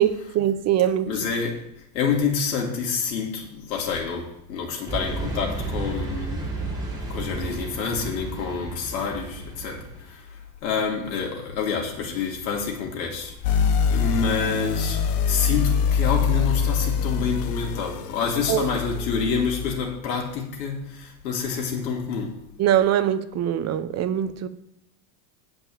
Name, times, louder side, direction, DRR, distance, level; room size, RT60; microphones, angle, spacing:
voice 1, 0.0-1.1 18.5-18.6 22.6-24.5, right 11 dB, 30° right, 12 dB, 0.8 m, -22 dB
voice 2, 1.1-1.7 1.9-6.5 7.1-13.6 13.9-22.4, left 6 dB, 85° left, 0 dB, 2.7 m, -28 dB
sound 1, 4.9-10.0, right 2 dB, 10° right, 4.5 m, -32 dB
sound 2, 13.4-19.8, left 6 dB, 70° left, 1.3 m, -24 dB
9.6 x 5.2 x 7.4 m, 0.81 s
supercardioid pair, 120°, 49 cm